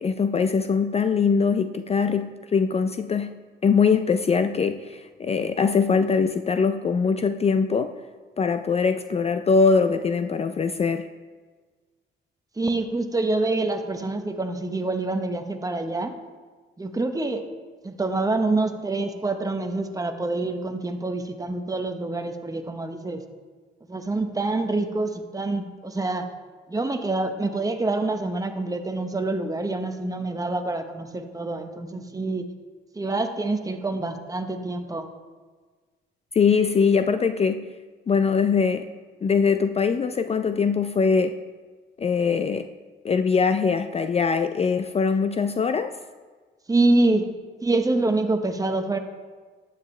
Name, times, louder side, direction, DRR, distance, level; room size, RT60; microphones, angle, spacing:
voice 1, 0.0-8.0 8.4-11.1 36.3-37.7 38.1-38.9 39.2-41.4 42.0-42.7 43.0-45.9, left 5 dB, 30° left, 9 dB, 0.4 m, -22 dB
voice 2, 12.6-16.1 16.8-17.4 17.8-23.2 23.9-26.3 26.7-32.5 32.9-35.1 46.7-47.3 47.6-49.0, right 2 dB, 15° right, 6 dB, 1.0 m, -26 dB
12.0 x 9.1 x 3.2 m, 1.4 s
cardioid pair, 90°, 20 cm